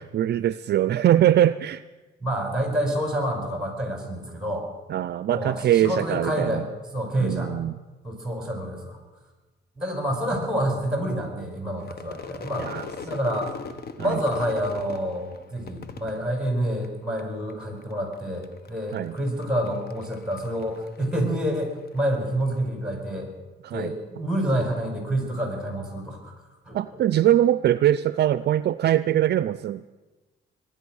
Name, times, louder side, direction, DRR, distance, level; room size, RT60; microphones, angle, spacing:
voice 1, 0.0-1.8 4.9-6.7 7.2-7.7 12.6-12.9 14.0-14.2 18.9-19.2 23.6-23.9 26.7-29.9, right 12 dB, 55° right, 15 dB, 0.4 m, -22 dB
voice 2, 2.2-4.7 5.3-6.6 6.9-7.5 8.0-9.0 9.8-12.7 13.0-13.5 14.0-23.3 23.7-26.3 26.7-26.8, right 1 dB, 5° right, 2 dB, 5.2 m, -28 dB
Crowd / Fireworks, 11.8-17.2 17.5-18.1 18.4-22.0, left 5 dB, 50° left, 1.3 m, -40 dB
22.0 x 10.0 x 6.3 m, 1.2 s
cardioid pair, 90°, 20 cm